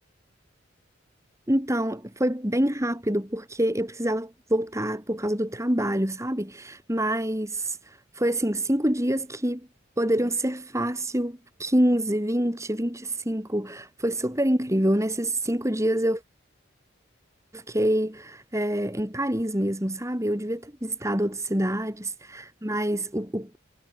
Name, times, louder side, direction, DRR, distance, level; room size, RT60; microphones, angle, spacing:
voice 1, 1.5-9.7 10.0-16.2 17.5-23.6, right 1 dB, 15° right, 5.6 m, -26 dB
head